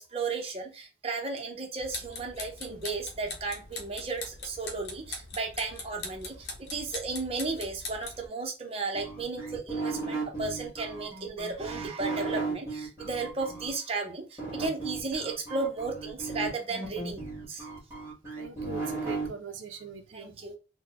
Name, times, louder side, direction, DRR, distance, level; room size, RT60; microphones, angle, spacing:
voice 1, 0.0-17.7 20.1-20.6, right 3 dB, 30° right, 2 dB, 0.7 m, -34 dB
sound 1, 1.8-8.3, left 3 dB, 60° left, 0.8 m, -41 dB
sound 2, 8.9-13.7 14.4-19.3, right 3 dB, 15° right, 1.5 m, -35 dB
voice 2, 18.4-20.4, right 5 dB, 90° right, 7 dB, 0.5 m, -41 dB
3.9 x 2.2 x 2.9 m, 0.31 s
head